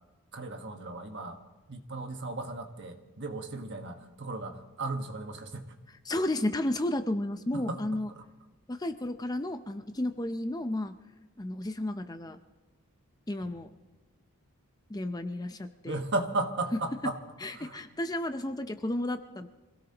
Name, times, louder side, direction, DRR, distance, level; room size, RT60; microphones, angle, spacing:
voice 1, 0.3-1.4 1.7-5.7 7.5-8.2 13.4-13.5 15.8-17.2 17.6-17.8, right 2 dB, 55° right, 5 dB, 1.5 m, -35 dB
voice 2, 6.1-8.1 8.7-10.9 11.4-12.4 13.3-13.7 14.9-16.0 17.4-19.5, left 1 dB, 15° left, 8 dB, 0.6 m, -32 dB
26.0 x 17.0 x 2.9 m, 1.2 s
head